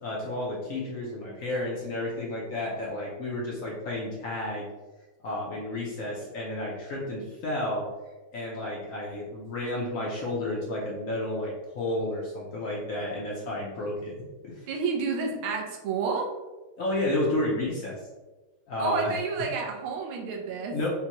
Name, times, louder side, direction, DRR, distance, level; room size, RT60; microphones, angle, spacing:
voice 1, 0.0-4.7 5.2-7.9 8.3-14.1 14.4-14.7 16.8-18.0 18.7-19.1 20.6-20.9, left 1 dB, 70° left, -4 dB, 0.7 m, -31 dB
voice 2, 14.7-16.3 18.8-20.8, right 5 dB, 80° right, 0 dB, 1.6 m, -30 dB
5.4 x 2.2 x 2.9 m, 1.2 s
omnidirectional pair, 2.3 m